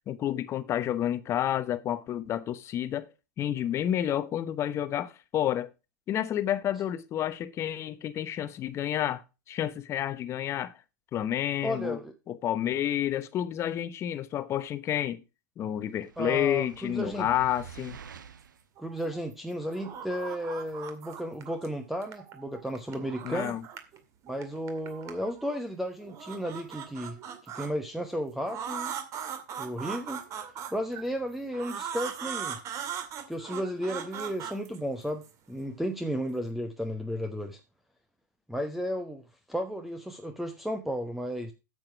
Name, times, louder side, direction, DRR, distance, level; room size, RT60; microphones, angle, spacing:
voice 1, 0.1-3.1 3.4-5.7 6.1-9.2 9.5-10.7 11.1-12.0 12.3-15.2 15.6-18.0 23.2-23.6, left 11 dB, 25° left, 1.0 m, -30 dB
voice 2, 11.6-12.1 16.2-17.3 18.8-23.6 24.3-28.9 29.6-30.2 30.7-32.6 33.3-37.6 38.5-41.5, equal, ahead, 1.1 m, -34 dB
sound 1, 16.0-18.6, right 7 dB, 85° right, 1.2 m, -47 dB
sound 2, 18.8-19.3 19.6-21.7 22.0-24.0 24.2-25.6 26.0-27.7 28.4-31.0 31.5-35.3, right 8 dB, 30° right, 2.2 m, -39 dB
9.0 x 7.9 x 4.7 m
hypercardioid pair, 120°, 10 cm